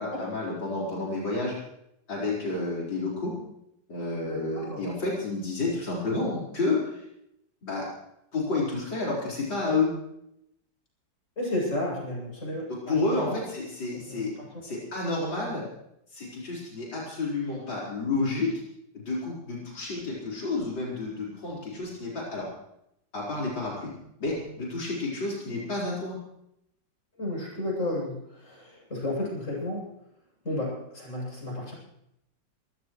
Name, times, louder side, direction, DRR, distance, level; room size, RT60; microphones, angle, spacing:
voice 1, 0.0-1.5 2.1-3.3 3.9-7.0 7.6-7.9 8.3-10.0 12.7-14.3 14.6-15.6 16.1-18.5 18.9-22.5 23.1-23.9 24.2-26.2, left 3 dB, 80° left, -5 dB, 5.3 m, -30 dB
voice 2, 4.1-4.8 11.4-12.9 13.3-13.4 14.1-14.2 14.7-14.8 27.2-29.9 30.4-31.7, left 1 dB, 40° left, -3 dB, 8.4 m, -32 dB
27.5 x 16.0 x 3.2 m, 0.77 s
omnidirectional pair, 2.0 m